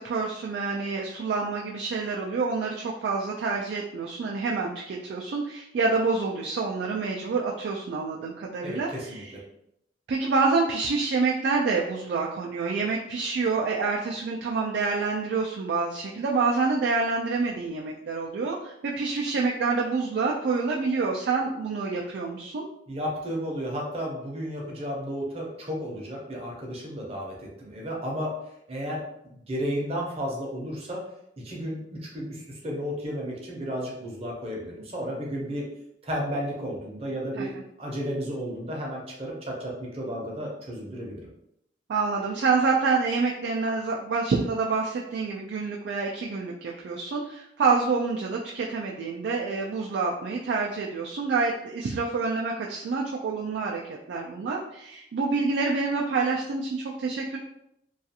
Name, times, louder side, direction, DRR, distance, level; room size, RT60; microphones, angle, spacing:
voice 1, 0.0-9.3 10.1-22.7 37.4-37.6 41.9-57.4, right 4 dB, 65° right, -1 dB, 0.3 m, -27 dB
voice 2, 8.6-9.2 22.9-28.3 28.7-31.0 31.4-31.8 32.1-35.6 36.0-37.5 37.8-41.2, equal, 35° right, -2 dB, 0.6 m, -33 dB
2.4 x 2.3 x 2.7 m, 0.77 s
head